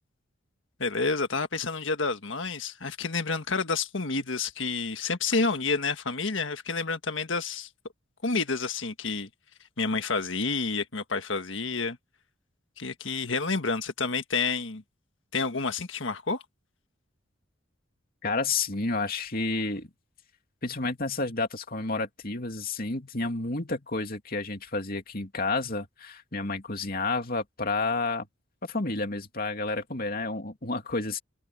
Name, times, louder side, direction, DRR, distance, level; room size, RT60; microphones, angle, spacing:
voice 1, 0.8-7.7 8.2-9.3 9.8-12.0 12.8-14.8 15.3-16.4, left 4 dB, 65° left, 1.6 m, -29 dB
voice 2, 18.2-19.9 20.6-28.3 28.7-31.2, left 3 dB, 45° left, 2.7 m, -30 dB
open air
head